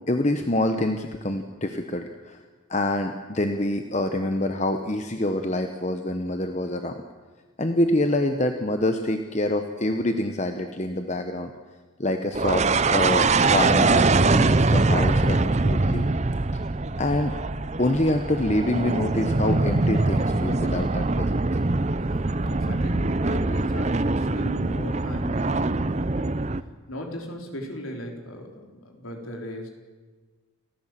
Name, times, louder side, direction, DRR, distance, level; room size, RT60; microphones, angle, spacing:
voice 1, 0.1-2.4 2.7-7.0 7.6-11.5 12.0-16.1 17.0-17.4 17.8-21.4, left 1 dB, 35° left, 6 dB, 1.1 m, -26 dB
sound 1, 12.3-26.6, right 3 dB, 35° right, 0.7 m, -23 dB
voice 2, 22.4-25.9 26.1-26.3 26.9-29.7, left 1 dB, 85° left, 2 dB, 3.9 m, -37 dB
29.0 x 15.0 x 7.7 m, 1.3 s
head